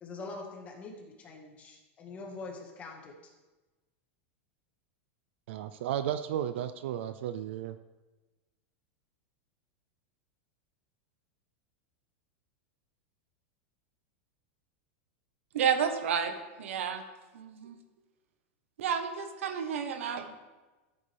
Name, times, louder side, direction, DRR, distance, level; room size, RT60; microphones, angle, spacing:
voice 1, 0.0-3.3, left 3 dB, 20° left, 1 dB, 1.7 m, -44 dB
voice 2, 5.5-7.8, right 10 dB, 65° right, 11 dB, 0.5 m, -34 dB
voice 3, 15.5-16.3 16.6-17.0 17.3-17.8 18.8-20.3, right 7 dB, 90° right, 7 dB, 1.3 m, -30 dB
13.5 x 8.6 x 3.5 m, 1.2 s
supercardioid pair, 160°, 7 cm